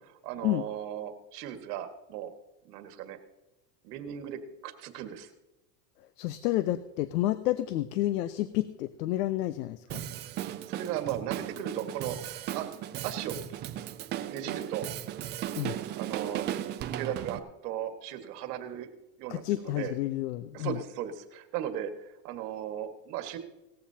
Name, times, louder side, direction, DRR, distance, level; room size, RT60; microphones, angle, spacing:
voice 1, 0.2-2.3 2.6-3.2 3.8-5.3 10.2-10.3 10.7-12.7 13.0-13.4 14.3-14.9 15.9-16.4 16.9-18.9 19.2-19.9 20.5-23.4, right 10 dB, 70° right, 6 dB, 1.8 m, -37 dB
voice 2, 6.2-10.0 15.6-15.8 19.3-20.8, left 15 dB, 80° left, 13 dB, 0.8 m, -30 dB
Drum kit, 9.9-17.4, right 12 dB, 25° right, 0.4 m, -36 dB
18.5 x 14.5 x 2.8 m, 0.99 s
supercardioid pair, 140°, 48 cm